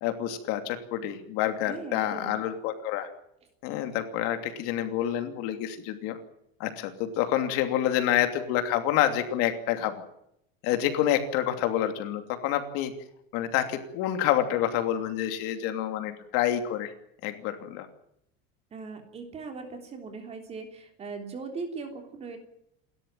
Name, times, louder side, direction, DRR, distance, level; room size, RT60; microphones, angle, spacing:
voice 1, 0.0-3.1 3.6-6.2 6.6-10.0 10.6-12.9 13.3-16.9 17.2-17.9, left 11 dB, 45° left, 7 dB, 2.8 m, -28 dB
voice 2, 1.7-2.4 18.7-22.4, right 4 dB, 20° right, 5 dB, 3.4 m, -39 dB
29.5 x 13.0 x 9.1 m, 0.77 s
cardioid pair, 180°, 32 cm